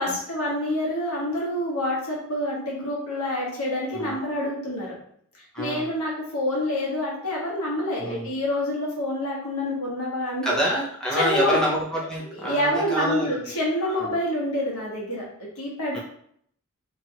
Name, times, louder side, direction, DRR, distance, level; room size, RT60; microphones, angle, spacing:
voice 1, 0.0-4.9 5.6-10.5 11.1-11.6 12.3-15.2 15.6-16.0, left 1 dB, 80° left, -4 dB, 1.1 m, -27 dB
voice 2, 5.5-5.9 8.0-8.3 10.4-13.6 13.8-14.1 15.9-16.0, right 1 dB, 5° left, -5 dB, 0.5 m, -27 dB
2.9 x 2.4 x 2.8 m, 0.67 s
head